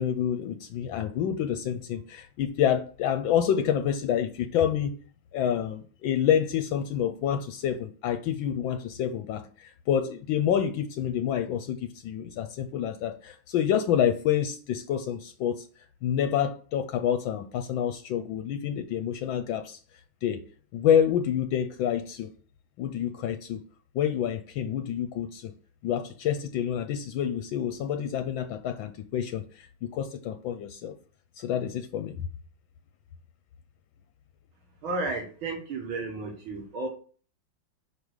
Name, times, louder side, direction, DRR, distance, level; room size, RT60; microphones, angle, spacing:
voice 1, 0.0-4.9 5.3-15.7 16.0-19.8 20.2-20.4 20.7-22.3 22.8-23.6 23.9-25.5 25.8-30.9 31.4-32.2, left 9 dB, 80° left, 1.4 m, -28 dB
voice 2, 34.8-36.9, right 3 dB, 85° right, 2.2 m, -33 dB
5.2 x 4.9 x 6.3 m
omnidirectional pair, 2.2 m